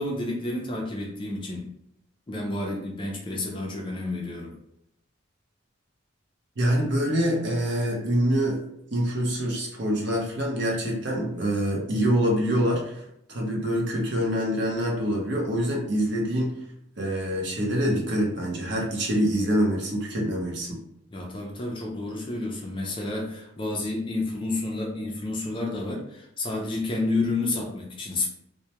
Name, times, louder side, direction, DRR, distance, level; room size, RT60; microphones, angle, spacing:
voice 1, 0.0-1.7 2.3-4.5 21.1-28.3, left 2 dB, 25° left, 0 dB, 0.4 m, -30 dB
voice 2, 6.6-8.6 8.9-12.9 13.3-16.6 17.0-20.8, equal, 55° right, -2 dB, 0.6 m, -25 dB
2.1 x 2.1 x 2.8 m, 0.79 s
head